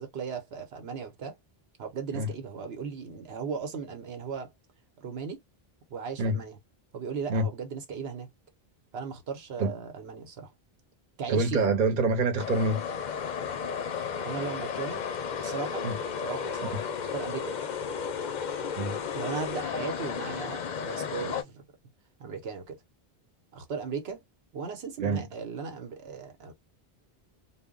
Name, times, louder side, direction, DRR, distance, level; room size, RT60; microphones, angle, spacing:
voice 1, 0.0-1.4 1.8-4.5 5.0-5.4 5.9-6.6 6.9-8.3 8.9-10.5 11.2-11.7 14.2-15.0 15.4-15.9 16.2-17.6 19.1-21.7 22.2-22.8 23.5-24.2 24.5-26.5, right 6 dB, 90° right, 1.0 m, -37 dB
voice 2, 11.3-12.8 15.8-16.0 18.8-19.0 25.0-25.3, right 2 dB, 55° right, 0.8 m, -26 dB
sound 1, 12.4-21.4, left 6 dB, 55° left, 0.5 m, -33 dB
2.2 x 2.0 x 3.6 m
omnidirectional pair, 1.0 m